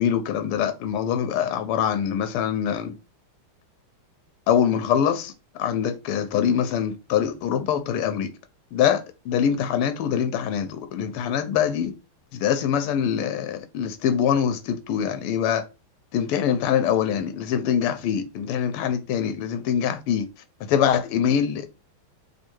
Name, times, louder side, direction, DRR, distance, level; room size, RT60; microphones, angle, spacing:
voice 1, 0.0-2.9 4.5-8.3 8.7-11.9 12.3-15.6 16.1-20.3 20.6-21.7, left 8 dB, 85° left, 1.6 m, -24 dB
3.6 x 3.3 x 4.4 m
omnidirectional pair, 2.4 m